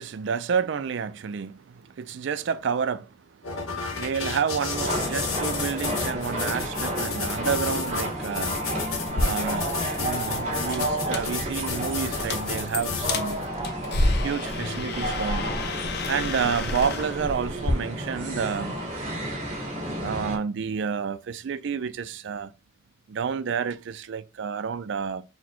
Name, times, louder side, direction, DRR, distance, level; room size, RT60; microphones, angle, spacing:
voice 1, 0.0-3.2 3.9-8.6 9.1-13.5 14.2-15.5 16.1-18.7 20.0-22.5 23.1-25.2, right 6 dB, 55° right, 0.3 m, -29 dB
sound 1, 3.4-13.5, left 4 dB, 85° left, 1.0 m, -32 dB
sound 2, 4.7-20.4, right 1 dB, 30° right, 1.6 m, -32 dB
sound 3, 9.1-17.7, left 2 dB, 50° left, 0.6 m, -30 dB
4.2 x 2.1 x 4.3 m
head